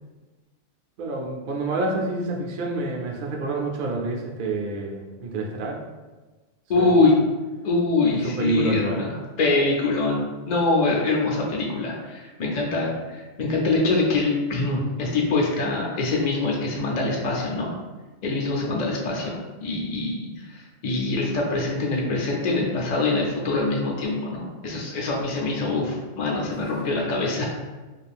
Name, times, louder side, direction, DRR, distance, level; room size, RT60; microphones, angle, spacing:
voice 1, 1.0-5.8 6.8-7.1 8.2-9.1 26.4-26.5, right 2 dB, 60° right, 0 dB, 0.6 m, -28 dB
voice 2, 6.7-7.2 7.6-17.8 18.2-20.3 20.5-27.5, left 3 dB, 55° left, -2 dB, 0.5 m, -24 dB
2.5 x 2.4 x 3.3 m, 1.2 s
omnidirectional pair, 1.3 m